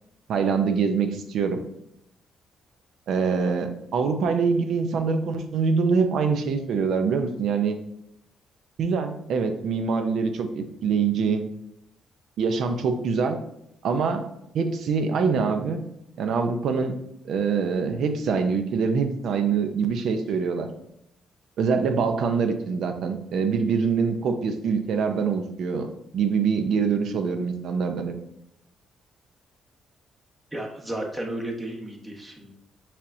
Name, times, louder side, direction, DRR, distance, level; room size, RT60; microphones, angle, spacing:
voice 1, 0.3-1.6 3.1-7.8 8.8-11.4 12.4-13.4 13.8-14.3 14.5-15.8 16.2-17.0 17.2-20.7 21.6-28.1, right 5 dB, 70° right, 7 dB, 0.5 m, -24 dB
voice 2, 30.5-32.5, right 1 dB, 20° right, 0 dB, 1.0 m, -33 dB
5.5 x 3.4 x 2.6 m, 0.78 s
cardioid pair, 90°, 0 cm